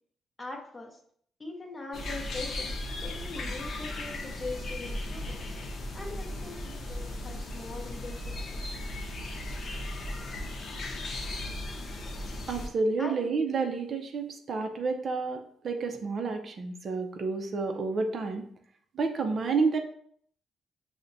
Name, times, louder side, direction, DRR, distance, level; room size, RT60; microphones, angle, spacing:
voice 1, 0.4-1.0 1.4-2.7 3.0-5.4 5.9-8.6 13.0-13.2, left 3 dB, 20° left, 1 dB, 0.7 m, -41 dB
sound 1, 1.9-12.7, left 1 dB, 55° left, 0.6 m, -36 dB
voice 2, 12.5-18.5 18.9-19.8, right 4 dB, 50° right, 4 dB, 0.5 m, -30 dB
5.6 x 2.1 x 2.5 m, 0.62 s
cardioid pair, 95°, 0 cm